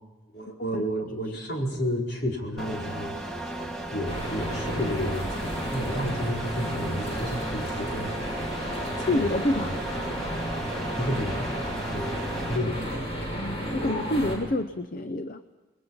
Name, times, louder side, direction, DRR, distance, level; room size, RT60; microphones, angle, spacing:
voice 1, 0.3-3.1 3.9-8.3 9.0-9.3 11.0-11.6 11.9-12.2 12.5-13.0 13.8-14.1, equal, 65° left, -1 dB, 4.8 m, -31 dB
sound 1, 2.6-12.6, right 1 dB, 5° left, 2.3 m, -35 dB
sound 2, 4.1-14.4, equal, 35° left, 6.6 m, -33 dB
voice 2, 9.1-9.8 13.3-15.4, left 1 dB, 50° left, 10 dB, 0.8 m, -27 dB
28.5 x 21.5 x 5.6 m, 1.2 s
head